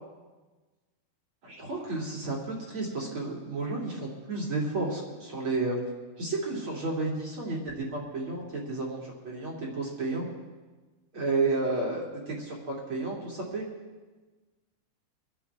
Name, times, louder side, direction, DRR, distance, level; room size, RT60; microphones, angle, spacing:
voice 1, 1.4-5.8 6.2-10.3 11.1-13.7, right 3 dB, 35° right, -3 dB, 2.8 m, -32 dB
25.5 x 11.5 x 3.5 m, 1.3 s
omnidirectional pair, 5.1 m